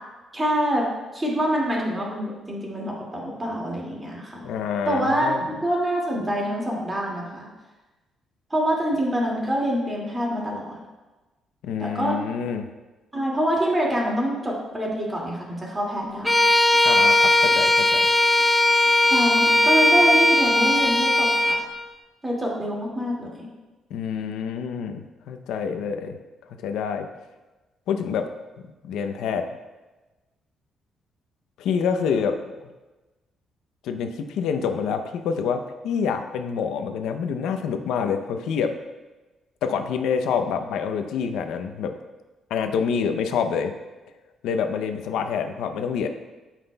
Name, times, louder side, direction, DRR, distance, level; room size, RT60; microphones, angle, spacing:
voice 1, 0.3-0.9 1.1-4.5 4.8-7.5 8.5-10.8 11.8-12.2 13.1-16.4 19.1-21.6 22.2-23.5, equal, 15° right, -3 dB, 2.3 m, -25 dB
voice 2, 4.4-5.5 11.6-12.7 16.8-18.1 23.9-26.2 26.6-27.1 27.9-28.3 28.8-29.5 31.6-32.5 33.8-38.7 39.6-41.9 42.5-43.7 44.4-46.1, left 6 dB, 90° left, 7 dB, 0.7 m, -27 dB
Bowed string instrument, 16.2-21.6, left 1 dB, 10° left, 1.0 m, -18 dB
14.0 x 5.8 x 2.3 m, 1.2 s
cardioid pair, 120°, 0 cm